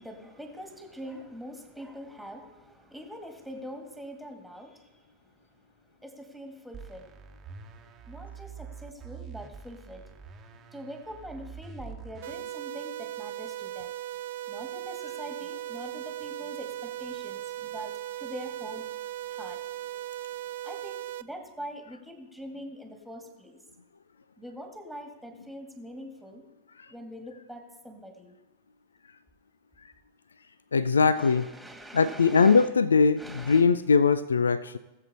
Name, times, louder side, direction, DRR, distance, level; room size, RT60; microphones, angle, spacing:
voice 1, 0.0-7.3 8.1-10.0 10.7-13.9 14.5-18.8 19.3-19.6 20.6-23.6 24.4-26.4 26.9-28.3 31.0-32.7 33.2-33.7, equal, ahead, 3 dB, 1.9 m, -43 dB
sound 1, 6.7-12.3, right 6 dB, 25° right, 1.1 m, -45 dB
sound 2, 12.2-21.2, right 14 dB, 55° right, 0.4 m, -38 dB
voice 2, 30.7-31.5 31.9-34.8, left 5 dB, 70° left, 16 dB, 0.3 m, -21 dB
18.5 x 7.5 x 4.2 m, 1.1 s
figure-of-eight pair, 90°, 0 cm